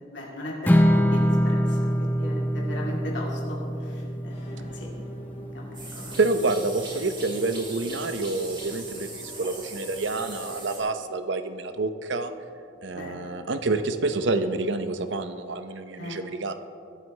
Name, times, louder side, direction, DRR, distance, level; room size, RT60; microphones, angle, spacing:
voice 1, 0.0-1.9 2.2-4.9 5.5-6.1 12.9-13.3 16.0-16.2, left 1 dB, 65° left, -3 dB, 2.4 m, -38 dB
sound 1, 0.7-15.3, equal, 35° left, 1.9 m, -47 dB
Strum, 0.7-6.9, equal, 10° left, 0.6 m, -25 dB
sound 2, 5.7-10.8, right 2 dB, 25° right, 2.4 m, -40 dB
voice 2, 6.2-12.3 12.8-16.5, right 3 dB, 70° right, 9 dB, 0.7 m, -28 dB
22.0 x 8.0 x 3.3 m, 2.5 s
head